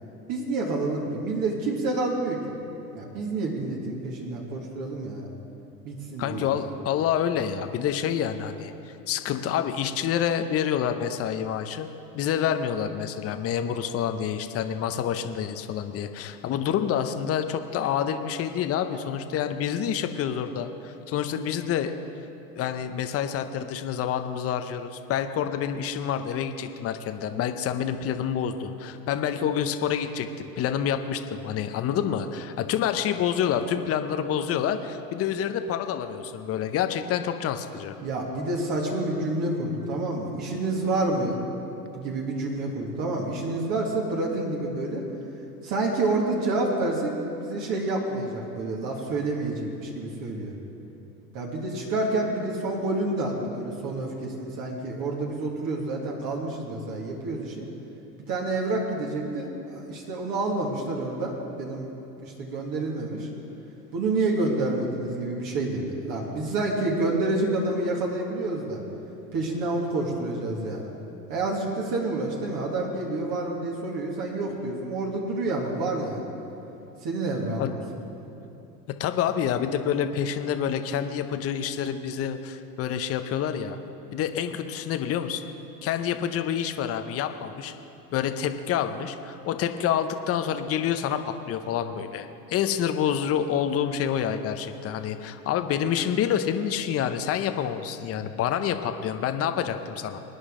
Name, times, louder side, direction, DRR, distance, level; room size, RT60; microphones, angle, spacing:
voice 1, 0.3-2.4 2.9-5.3 5.8-6.6 38.0-41.4 41.9-45.0 45.6-47.1 47.4-50.6 51.3-57.7 58.3-61.9 62.2-63.3 63.9-68.8 69.3-70.8 71.3-76.3 77.0-77.7, right 2 dB, 45° right, -1 dB, 2.2 m, -28 dB
voice 2, 6.2-11.9 12.1-21.9 22.6-37.9 77.6-77.7 78.9-83.8 84.1-85.4 85.8-87.7 88.1-100.2, left 9 dB, 30° left, 8 dB, 0.8 m, -28 dB
23.0 x 9.6 x 3.8 m, 3.0 s
hypercardioid pair, 100°, 49 cm